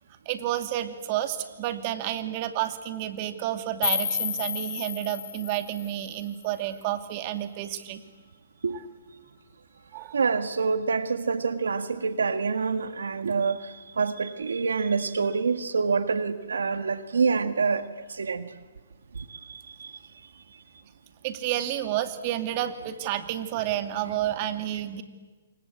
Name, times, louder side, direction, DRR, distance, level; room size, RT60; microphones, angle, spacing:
voice 1, 0.3-8.0 9.9-10.2 21.2-25.0, right 12 dB, 40° right, 8 dB, 2.4 m, -30 dB
sound 1, 3.8-6.8, left 8 dB, 65° left, 4.5 m, -32 dB
voice 2, 10.1-13.6 14.0-17.8 18.1-18.5 19.5-19.9, right 5 dB, 85° right, 10 dB, 1.7 m, -26 dB
27.5 x 25.0 x 8.6 m, 1.3 s
hypercardioid pair, 140°, 0 cm